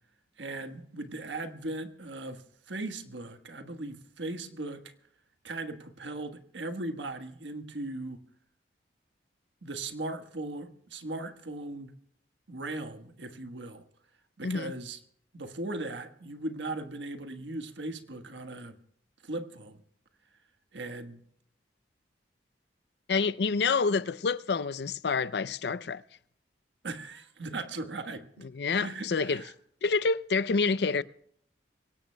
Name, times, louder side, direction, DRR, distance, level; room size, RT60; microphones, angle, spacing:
voice 1, 0.4-4.9 5.4-8.2 9.6-11.9 12.5-13.8 14.4-15.0 15.3-18.8 19.2-19.8 20.7-21.2 26.8-28.4 28.8-29.5, right 2 dB, 85° right, 1.4 m, -38 dB
voice 2, 14.4-14.7 23.1-26.0 28.5-29.4 29.8-31.0, left 4 dB, 65° left, 0.5 m, -28 dB
24.0 x 17.5 x 2.2 m
head